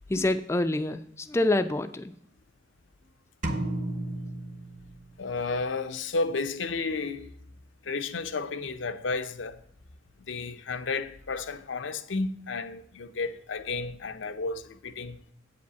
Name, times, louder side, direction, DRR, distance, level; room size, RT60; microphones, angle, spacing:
voice 1, 0.1-2.1, left 2 dB, 15° left, 0.3 m, -26 dB
sound 1, 3.4-5.4, right 1 dB, 40° right, 1.0 m, -33 dB
voice 2, 5.2-7.3 7.8-9.6 10.3-15.2, left 3 dB, 85° left, 0.7 m, -32 dB
8.3 x 5.2 x 6.8 m
head